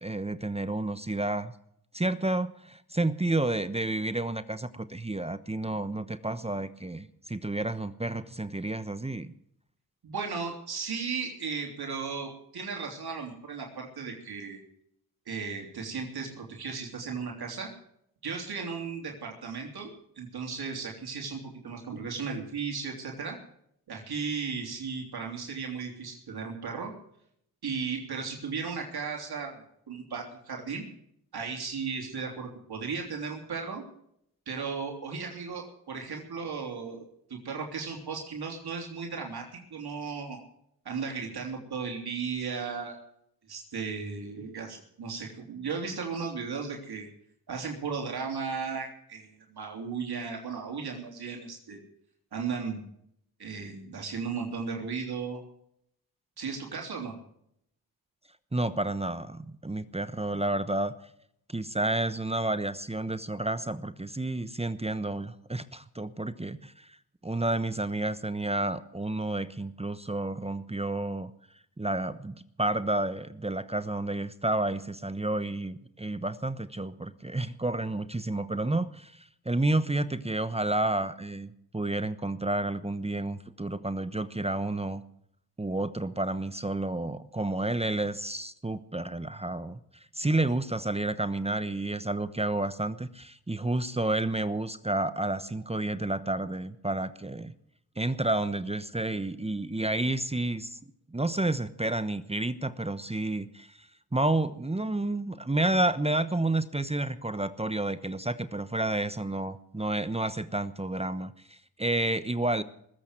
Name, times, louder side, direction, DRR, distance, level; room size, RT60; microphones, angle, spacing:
voice 1, 0.0-1.5 1.9-9.3 58.5-60.9 61.5-67.0 67.2-71.3 71.8-85.0 85.6-97.5 98.0-100.8 101.1-112.6, right 2 dB, 15° right, 13 dB, 1.0 m, -30 dB
voice 2, 10.0-14.6 15.2-17.7 18.2-19.9 20.1-23.4 23.9-26.9 27.6-30.8 31.3-33.8 34.5-40.4 40.8-43.0 43.5-47.1 47.5-51.8 52.3-52.8 53.4-55.4 56.4-57.1, right 5 dB, 75° right, 1 dB, 3.4 m, -35 dB
20.5 x 8.3 x 7.6 m, 0.71 s
cardioid pair, 50°, 39 cm